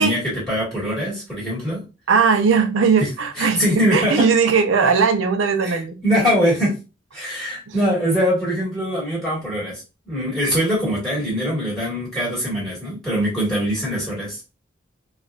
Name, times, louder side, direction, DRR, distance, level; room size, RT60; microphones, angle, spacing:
voice 1, 0.0-1.8 3.0-3.1 3.4-4.2 5.6-6.7 7.1-14.5, equal, 5° left, 1.7 m, -22 dB
voice 2, 2.1-6.0 7.7-7.8, right 5 dB, 85° right, 0.5 m, -18 dB
4.3 x 2.4 x 2.4 m
head